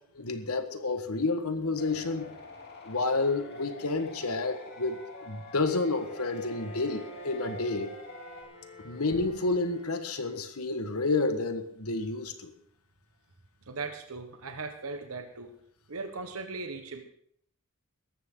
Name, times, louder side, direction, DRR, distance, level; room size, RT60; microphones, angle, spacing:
voice 1, 0.1-2.3 2.8-8.0 8.8-12.5, left 3 dB, 85° left, 8 dB, 1.5 m, -30 dB
sound 1, 1.8-8.4, left 2 dB, 50° left, 3.3 m, -47 dB
Wind instrument woodwind instrument, 3.2-6.4 6.6-10.6, left 1 dB, 5° left, 5.9 m, -54 dB
Bowed string instrument, 5.8-10.6, right 3 dB, 25° left, 3.9 m, -50 dB
voice 2, 13.7-15.5 15.9-17.0, right 3 dB, 75° right, 5 dB, 1.3 m, -38 dB
18.0 x 14.0 x 3.9 m, 0.67 s
head